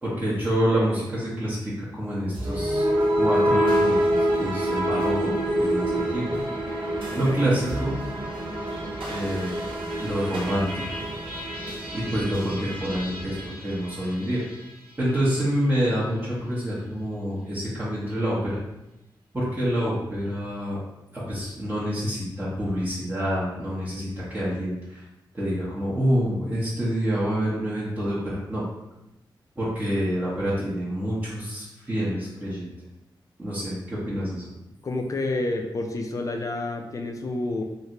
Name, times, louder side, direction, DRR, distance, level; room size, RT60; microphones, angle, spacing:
voice 1, 0.0-2.8 3.2-6.4 7.1-7.9 9.1-9.7 10.0-10.8 11.9-14.4 15.0-18.6 19.3-20.8 21.1-25.0 25.3-28.6 29.6-32.7 33.4-34.5, equal, 20° right, -9 dB, 0.8 m, -27 dB
sound 1, 2.3-14.7, right 1 dB, 80° right, 0.7 m, -27 dB
voice 2, 34.8-37.6, left 2 dB, 40° left, 3 dB, 0.4 m, -29 dB
3.1 x 2.4 x 2.8 m, 0.93 s
wide cardioid pair, 125°, 9 cm